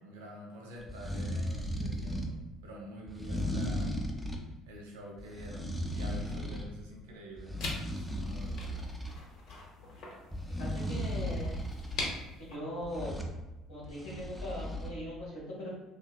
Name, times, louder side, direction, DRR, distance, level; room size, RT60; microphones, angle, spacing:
voice 1, 0.0-2.3 2.6-3.9 4.7-9.0, equal, 80° right, -1 dB, 0.4 m, -47 dB
sound 1, 0.8-2.4 3.1-4.5 5.2-6.7 7.1-9.2 10.3-12.1 12.8-13.4 13.8-14.9, equal, 5° left, 0.5 m, -36 dB
sound 2, 7.6-12.6, left 2 dB, 65° left, 0.7 m, -42 dB
voice 2, 10.5-11.5 12.4-13.2 13.7-15.7, equal, 90° left, -6 dB, 1.0 m, -40 dB
2.7 x 2.3 x 2.3 m, 1.1 s
hypercardioid pair, 60°, 0 cm